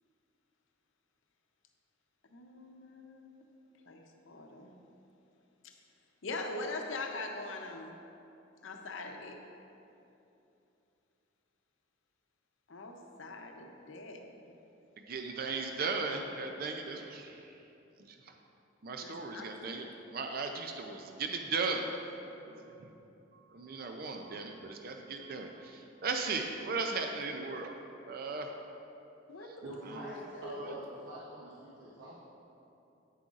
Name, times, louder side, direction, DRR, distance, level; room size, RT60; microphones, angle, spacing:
voice 1, 2.3-3.3 3.9-4.7 6.2-7.9 8.6-9.4 12.7-14.3 19.0-19.7 29.3-29.5 30.3-30.6, left 2 dB, 80° left, 3 dB, 0.7 m, -42 dB
voice 2, 15.1-17.4 18.0-18.2 18.8-19.9 20.1-21.8 22.4-22.9 23.3-27.8 28.1-28.5, right 4 dB, 50° right, 4 dB, 0.4 m, -37 dB
voice 3, 29.6-32.2, right 1 dB, 80° right, -6 dB, 1.0 m, -45 dB
9.1 x 7.6 x 2.5 m, 2.9 s
head